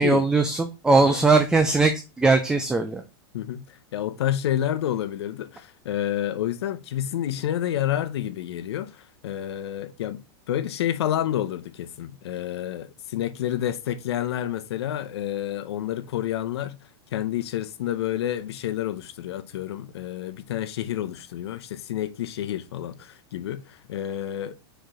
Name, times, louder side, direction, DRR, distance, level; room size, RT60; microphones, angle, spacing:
voice 1, 0.0-3.0, right 3 dB, 5° right, 0.4 m, -20 dB
voice 2, 1.0-1.3 3.3-16.8 17.1-24.6, left 11 dB, 85° left, 0.8 m, -29 dB
4.7 x 4.5 x 5.0 m
supercardioid pair, 165°, 13 cm